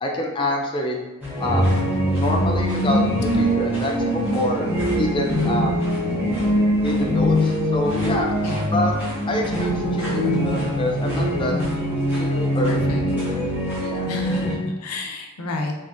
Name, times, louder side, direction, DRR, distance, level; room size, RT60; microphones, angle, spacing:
voice 1, 0.0-1.0 1.4-1.8 2.2-4.7 5.0-5.9 6.8-8.3 8.7-8.9 9.3-11.5 12.1-13.4 13.7-14.1, left 1 dB, 20° left, 0 dB, 0.4 m, -27 dB
sound 1, 1.2-14.6, equal, 10° right, 1.1 m, -22 dB
voice 2, 11.4-11.8 12.7-13.0 14.1-15.7, left 2 dB, 90° left, 2 dB, 0.5 m, -30 dB
3.6 x 2.5 x 2.4 m, 1.2 s
head